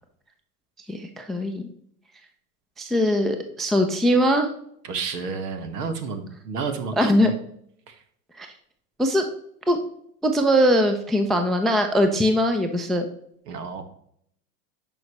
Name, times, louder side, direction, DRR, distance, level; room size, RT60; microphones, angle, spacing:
voice 1, 0.9-1.7 2.8-4.5 7.0-7.3 8.4-8.5 9.0-9.2 9.7-9.8 10.2-13.1, equal, ahead, 6 dB, 0.3 m, -21 dB
voice 2, 4.8-7.3 7.9-8.0 13.5-13.8, right 5 dB, 80° right, 8 dB, 1.4 m, -31 dB
10.5 x 5.3 x 3.0 m, 0.69 s
hypercardioid pair, 95°, 47 cm